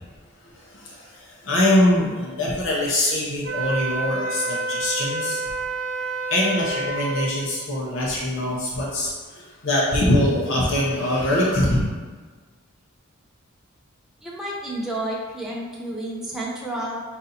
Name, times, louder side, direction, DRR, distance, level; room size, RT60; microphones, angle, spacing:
voice 1, 0.7-1.1 1.4-5.4 6.3-11.8, left 1 dB, 60° left, -5 dB, 0.8 m, -23 dB
Wind instrument woodwind instrument, 3.4-7.4, right 2 dB, 55° right, 0.5 m, -28 dB
voice 2, 14.2-17.0, right 1 dB, ahead, -5 dB, 0.5 m, -30 dB
4.0 x 2.6 x 4.0 m, 1.4 s
head